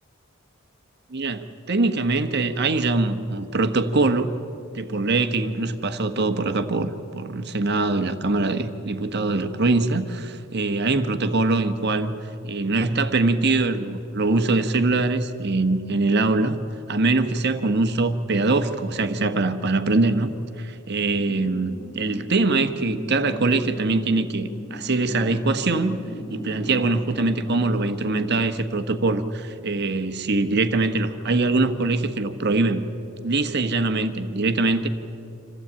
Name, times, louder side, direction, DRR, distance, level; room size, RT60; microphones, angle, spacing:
voice 1, 1.1-4.3 4.7-16.6 16.9-26.0 26.3-32.9 33.2-34.9, right 3 dB, 55° right, 8 dB, 1.2 m, -23 dB
sound 1, 21.1-28.5, left 1 dB, 20° left, 0.7 m, -38 dB
26.5 x 15.5 x 8.7 m, 2.7 s
head